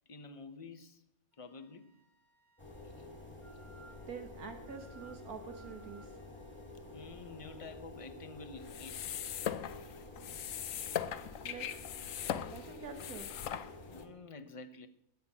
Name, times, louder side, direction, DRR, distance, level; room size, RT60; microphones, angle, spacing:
voice 1, 0.1-1.0 1.4-2.0 2.8-3.1 6.9-9.2 13.9-14.9, left 3 dB, 30° left, 0.6 m, -49 dB
Wind instrument woodwind instrument, 1.3-7.7, right 3 dB, 10° right, 1.9 m, -64 dB
sound 1, 2.6-14.1, left 2 dB, 5° left, 2.3 m, -50 dB
voice 2, 4.1-6.2 11.4-11.7 12.4-13.3, right 6 dB, 75° right, 1.7 m, -46 dB
sound 2, 8.6-14.0, left 10 dB, 65° left, 1.0 m, -40 dB
13.0 x 9.3 x 5.5 m
omnidirectional pair, 1.6 m